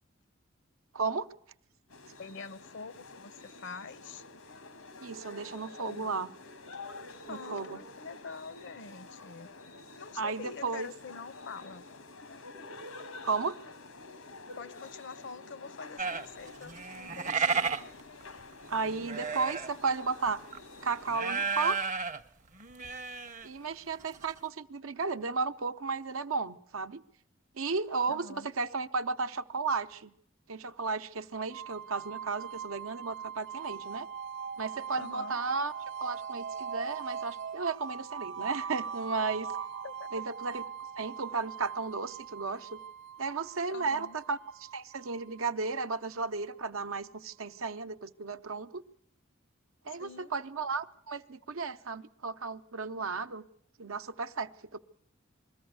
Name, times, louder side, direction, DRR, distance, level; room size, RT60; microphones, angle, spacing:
voice 1, 0.9-1.3 5.0-6.3 7.3-7.8 10.2-10.9 13.2-13.5 18.7-20.4 20.8-21.8 23.4-27.0 27.6-28.3 28.6-30.1 30.5-34.1 34.6-35.7 36.0-39.5 40.1-40.6 41.0-42.8 43.2-48.8 49.8-53.5 53.8-54.8, right 4 dB, 85° right, 9 dB, 0.8 m, -34 dB
sound 1, 1.9-21.5, left 3 dB, 85° left, 1.6 m, -49 dB
voice 2, 2.2-4.3 5.8-6.2 7.3-9.5 9.9-11.8 14.5-17.7 28.1-28.5 35.0-35.4 39.8-40.2 43.7-44.2 49.9-50.3, left 5 dB, 60° left, 17 dB, 0.7 m, -45 dB
sound 2, 16.0-19.9 20.3-20.6 21.1-22.2 22.5-23.5 23.7-23.8 24.1-24.4, right 5 dB, 35° right, 0.7 m, -33 dB
sound 3, 31.5-46.4, right 7 dB, 60° right, 1.0 m, -41 dB
21.5 x 14.5 x 9.4 m, 0.70 s
head